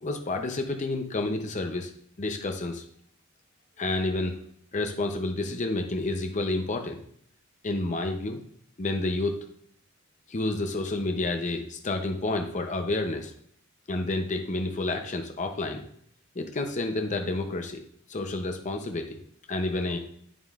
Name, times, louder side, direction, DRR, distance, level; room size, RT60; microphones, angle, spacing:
voice 1, 0.0-1.9 2.2-2.8 3.8-4.4 4.7-7.0 7.6-8.4 8.8-9.4 10.3-13.3 13.9-15.8 16.4-17.8 18.1-19.2 19.5-20.0, left 2 dB, 35° left, 5 dB, 0.6 m, -29 dB
8.6 x 7.3 x 2.4 m, 0.65 s
head